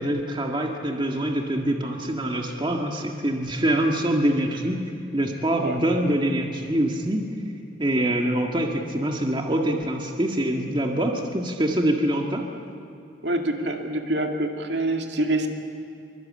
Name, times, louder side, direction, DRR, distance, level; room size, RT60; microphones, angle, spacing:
voice 1, 0.0-4.8 5.1-7.2 7.8-12.5, right 1 dB, 25° right, 2 dB, 1.7 m, -24 dB
voice 2, 13.2-15.5, right 1 dB, 65° right, 3 dB, 2.5 m, -26 dB
24.5 x 24.0 x 8.7 m, 2.7 s
head